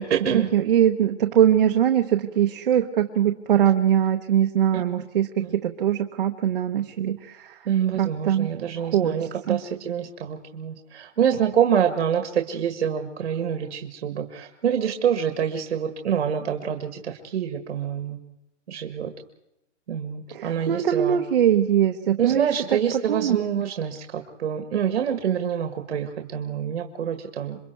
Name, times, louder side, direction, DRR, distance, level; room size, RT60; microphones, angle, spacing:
voice 1, 0.0-0.5 5.4-5.5 7.7-18.2 18.7-19.1 19.9-21.2 22.2-27.6, right 8 dB, 65° right, 5 dB, 1.8 m, -26 dB
voice 2, 0.5-7.6 8.0-8.5 8.8-9.6 20.3-22.8 23.1-23.4, right 10 dB, 45° right, 3 dB, 1.1 m, -22 dB
27.5 x 23.0 x 4.6 m, 0.87 s
hypercardioid pair, 180°, 37 cm